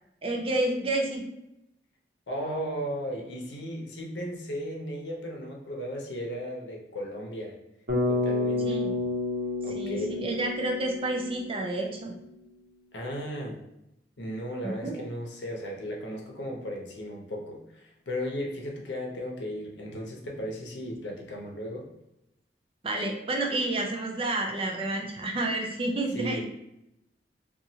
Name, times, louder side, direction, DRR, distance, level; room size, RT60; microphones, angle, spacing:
voice 1, 0.2-1.2 8.6-9.0 9.7-12.1 14.6-15.0 22.8-26.4, right 2 dB, 30° right, 1 dB, 0.4 m, -30 dB
voice 2, 2.3-7.6 8.1-8.7 9.6-10.1 12.9-13.6 14.2-21.9 26.1-26.4, equal, 80° left, -1 dB, 0.7 m, -35 dB
Bass guitar, 7.9-12.0, left 2 dB, 75° right, 0.9 m, -30 dB
2.9 x 2.4 x 2.7 m, 0.85 s
head